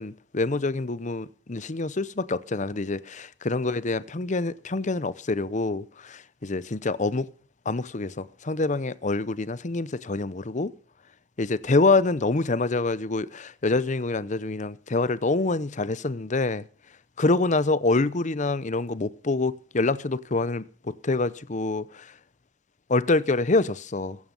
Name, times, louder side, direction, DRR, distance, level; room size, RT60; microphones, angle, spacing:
voice 1, 0.0-7.3 7.7-10.7 11.4-16.7 17.2-22.1 22.9-24.2, left 3 dB, 40° left, 0.8 m, -26 dB
15.5 x 14.5 x 5.5 m
head